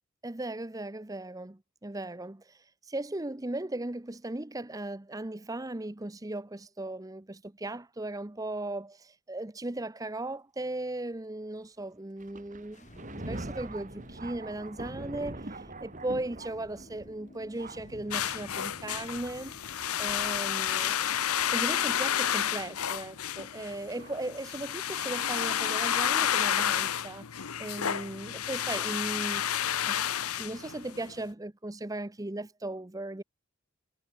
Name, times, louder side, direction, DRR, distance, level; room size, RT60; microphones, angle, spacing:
voice 1, 0.2-19.5 20.0-21.0 21.5-27.3 27.6-29.4 29.9-30.0 30.4-33.2, right 2 dB, 15° right, 0.7 m, -37 dB
Thunder, 12.2-22.1 22.9-23.0 24.0-24.2 24.9-25.1, right 2 dB, 35° right, 1.8 m, -44 dB
sound 1, 12.7-19.8, left 1 dB, 35° left, 1.2 m, -53 dB
sound 2, 18.1-31.1, left 9 dB, 85° left, 0.9 m, -30 dB
head